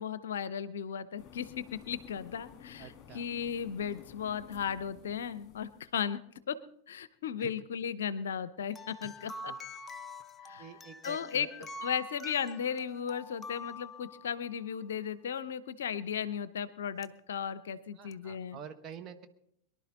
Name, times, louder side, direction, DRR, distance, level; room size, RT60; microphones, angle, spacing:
voice 1, 0.0-1.5 1.9-6.2 6.5-6.6 6.9-9.5 10.4-10.7 11.0-11.5 11.8-18.6, left 7 dB, 60° left, 17 dB, 0.6 m, -36 dB
Computer Shut Down, 1.2-6.0, left 9 dB, 30° left, 2.0 m, -53 dB
voice 2, 2.8-3.2 7.4-7.5 9.0-9.1 9.5-9.6 10.6-11.5 18.0-19.3, right 7 dB, 30° right, 7 dB, 1.2 m, -48 dB
sound 1, 8.7-14.7 17.0-17.1 18.1-18.2, left 2 dB, 15° left, 0.6 m, -46 dB
23.0 x 11.5 x 4.0 m, 0.76 s
figure-of-eight pair, 90°, 0 cm